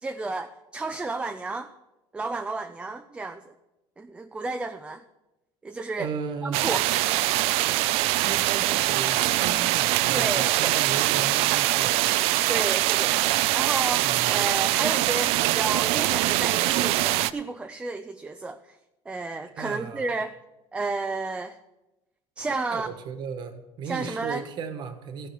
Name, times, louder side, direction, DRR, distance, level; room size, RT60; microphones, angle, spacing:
voice 1, 0.0-1.7 2.1-3.4 4.0-5.0 5.6-6.1 6.4-6.9 10.1-10.8 12.5-18.8 19.1-20.3 20.7-21.6 22.4-22.9 23.8-24.4, right 3 dB, 10° right, 9 dB, 0.4 m, -32 dB
voice 2, 6.0-6.6 8.2-12.1 14.0-14.5 19.5-20.1 22.7-25.3, right 6 dB, 45° right, 9 dB, 1.3 m, -35 dB
sound 1, 6.5-17.3, right 16 dB, 70° right, 0.5 m, -23 dB
15.0 x 5.1 x 8.6 m, 1.0 s
cardioid pair, 155°, 10 cm